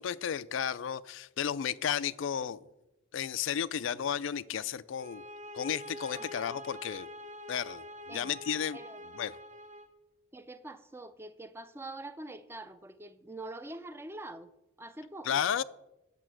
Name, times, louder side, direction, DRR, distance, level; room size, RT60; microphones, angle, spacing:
voice 1, 0.0-2.6 3.1-5.2 5.5-7.1 7.5-8.8 9.2-9.4 15.2-15.6, left 8 dB, 80° left, 0.4 m, -33 dB
sound 1, 5.0-9.9, left 1 dB, 35° right, 1.0 m, -45 dB
voice 2, 10.3-14.5 14.8-15.5, right 2 dB, 10° right, 0.5 m, -44 dB
8.4 x 6.8 x 7.6 m
head